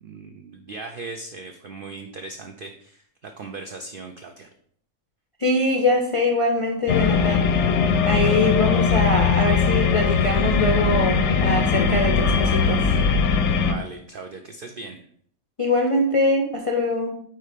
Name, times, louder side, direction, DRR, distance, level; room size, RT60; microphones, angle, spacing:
voice 1, 0.0-4.5 13.6-15.0, right 3 dB, 70° right, 5 dB, 0.5 m, -38 dB
voice 2, 5.4-7.7 8.1-12.8 15.6-17.1, left 2 dB, 50° left, 0 dB, 0.4 m, -23 dB
sound 1, 6.9-13.7, left 5 dB, 65° left, 0.8 m, -20 dB
4.7 x 4.3 x 5.0 m, 0.63 s
omnidirectional pair, 1.5 m